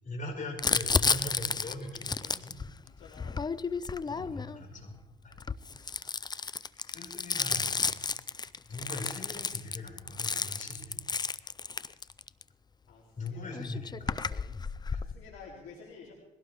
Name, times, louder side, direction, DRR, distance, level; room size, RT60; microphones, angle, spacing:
voice 1, 0.0-2.5 4.0-5.0 5.2-5.3 6.8-7.9 8.6-11.0 13.2-14.2 14.9-15.0, left 2 dB, 40° left, 0 dB, 5.0 m, -41 dB
Crumpling crinkling, 0.6-4.6 5.3-12.4 13.3-13.4 13.5-15.1, left 5 dB, 20° left, 0.4 m, -32 dB
voice 2, 2.8-3.5 5.3-5.5 12.9-13.6 14.7-16.1, left 5 dB, 85° left, -3 dB, 3.0 m, -51 dB
21.0 x 17.0 x 3.4 m, 1.1 s
cardioid pair, 90°, 20 cm